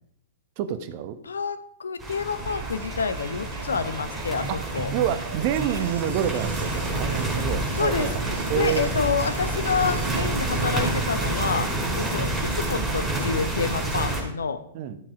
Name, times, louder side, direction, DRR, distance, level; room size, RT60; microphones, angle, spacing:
voice 1, 0.6-1.2 4.5-8.9 11.7-11.9 14.7-15.0, right 10 dB, 45° right, 10 dB, 1.1 m, -28 dB
voice 2, 1.2-4.9 7.7-8.1 8.5-12.3 12.5-14.6, left 5 dB, 75° left, 11 dB, 1.0 m, -28 dB
sound 1, 2.0-14.2, right 2 dB, ahead, 4.7 m, -28 dB
Crowd, 2.4-11.2, right 4 dB, 65° right, 1.6 m, -38 dB
13.5 x 7.3 x 4.9 m, 0.68 s
figure-of-eight pair, 105°, 0 cm